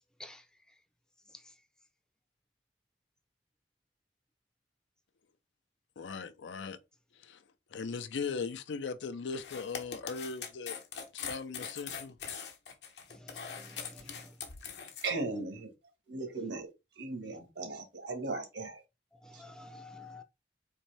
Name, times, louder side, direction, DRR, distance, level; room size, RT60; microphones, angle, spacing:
voice 1, 6.0-6.8 7.2-7.4 7.7-10.8 11.1-12.2, left 5 dB, 90° left, 0.5 m, -38 dB
sound 1, 9.3-15.1, left 7 dB, 70° left, 0.8 m, -42 dB
voice 2, 13.3-14.0 19.2-20.2, left 2 dB, 5° left, 0.4 m, -49 dB
voice 3, 15.0-15.7 16.1-16.7 17.0-18.8 19.3-19.4, right 3 dB, 80° right, 1.3 m, -37 dB
4.1 x 2.6 x 3.2 m
head